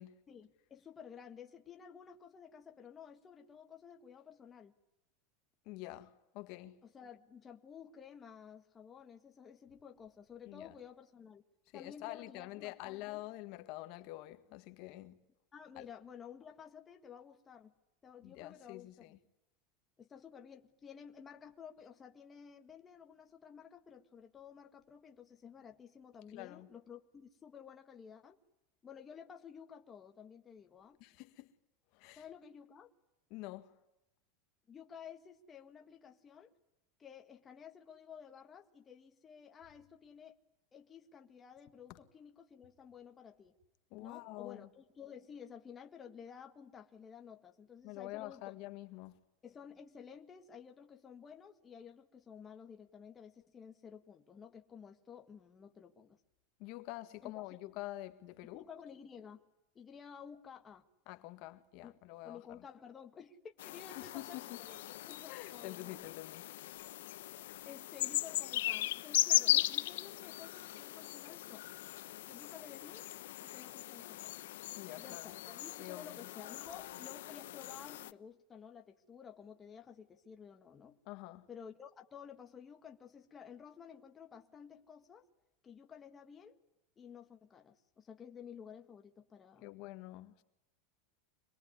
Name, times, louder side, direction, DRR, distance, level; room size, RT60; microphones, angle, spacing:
voice 1, 0.3-4.7 6.8-11.4 11.7-13.2 15.5-17.7 18.0-19.1 20.0-28.4 28.8-31.0 32.2-32.9 34.7-36.5 37.0-40.4 40.7-43.5 44.0-48.4 49.4-56.2 57.2-57.4 58.5-59.4 59.8-60.8 61.8-61.9 62.2-66.0 67.7-71.7 72.3-73.1 73.4-74.5 75.0-81.0 81.5-85.3 85.6-86.6 87.0-89.7, left 7 dB, 20° left, 1.7 m, -53 dB
voice 2, 5.7-6.8 10.5-10.7 11.7-15.2 15.8-15.9 18.2-19.2 26.3-26.7 31.0-31.5 32.0-32.2 33.3-33.7 41.9-42.0 43.9-44.7 47.8-49.1 56.6-58.6 61.1-62.4 64.0-64.6 65.3-66.4 74.8-75.3 75.8-76.2 81.1-81.5 89.6-90.4, left 18 dB, 50° left, 1.7 m, -47 dB
sound 1, 63.6-78.1, left 15 dB, 80° left, 0.9 m, -38 dB
25.5 x 21.5 x 9.7 m
supercardioid pair, 150°, 0 cm